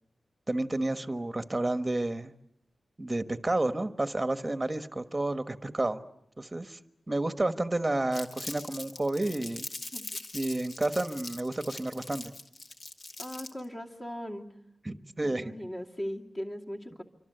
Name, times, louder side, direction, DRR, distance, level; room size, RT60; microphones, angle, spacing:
voice 1, 0.5-2.3 3.0-6.0 6.4-6.8 7.1-9.7 10.3-12.3 14.8-15.5, right 2 dB, 20° right, 9 dB, 1.3 m, -30 dB
Crumpling crinkling, 8.1-13.6, left 2 dB, 50° left, 2.4 m, -42 dB
voice 2, 13.2-14.5 15.2-17.0, equal, 25° left, 0 dB, 2.5 m, -38 dB
27.5 x 25.5 x 8.0 m, 0.77 s
wide cardioid pair, 135°, 0 cm